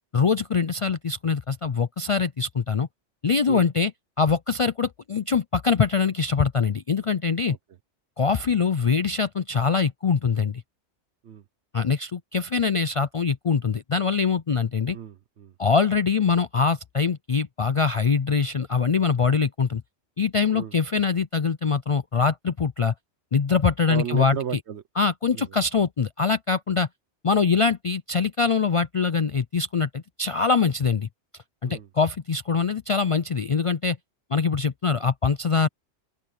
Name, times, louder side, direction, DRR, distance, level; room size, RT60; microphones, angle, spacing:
voice 1, 0.1-2.9 3.2-3.9 4.2-7.6 8.2-10.6 11.7-15.0 15.6-19.8 20.2-22.9 23.3-24.4 25.0-26.9 27.2-31.1 31.6-34.0 34.3-35.7, left 5 dB, 55° left, 0.3 m, -23 dB
voice 2, 14.9-15.5 20.5-20.7 23.9-24.8 25.3-25.5 31.6-31.9, right 9 dB, 70° right, 1.1 m, -34 dB
open air
omnidirectional pair, 1.2 m